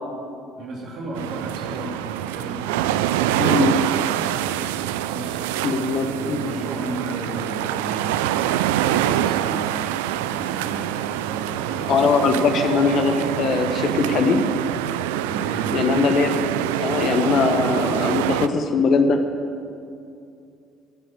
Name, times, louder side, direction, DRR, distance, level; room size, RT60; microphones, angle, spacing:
voice 1, 0.6-2.9 3.3-4.7 5.0-5.4 6.0-10.9 11.2-12.2 15.2-16.0, right 3 dB, 60° right, -3 dB, 2.9 m, -34 dB
sound 1, 1.2-18.5, right 12 dB, 75° right, 0.4 m, -25 dB
voice 2, 3.4-3.8 5.6-6.5 11.9-14.4 15.7-16.3 16.8-19.2, left 4 dB, 55° left, 7 dB, 1.0 m, -21 dB
14.5 x 7.7 x 9.5 m, 2.5 s
hypercardioid pair, 55°, 0 cm